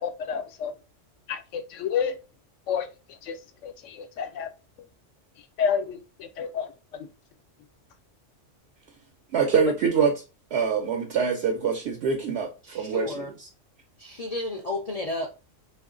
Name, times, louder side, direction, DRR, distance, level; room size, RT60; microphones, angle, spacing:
voice 1, 0.0-0.7 1.3-2.2 2.7-2.9 3.2-3.4 3.6-4.5 5.6-6.7 7.0-7.1, left 7 dB, 80° left, 1.0 m, -29 dB
voice 2, 9.3-10.2 10.5-13.5, right 6 dB, 65° right, 0.8 m, -25 dB
voice 3, 12.6-13.3 14.0-15.3, left 2 dB, 55° left, 0.4 m, -32 dB
3.0 x 2.5 x 3.6 m
omnidirectional pair, 1.3 m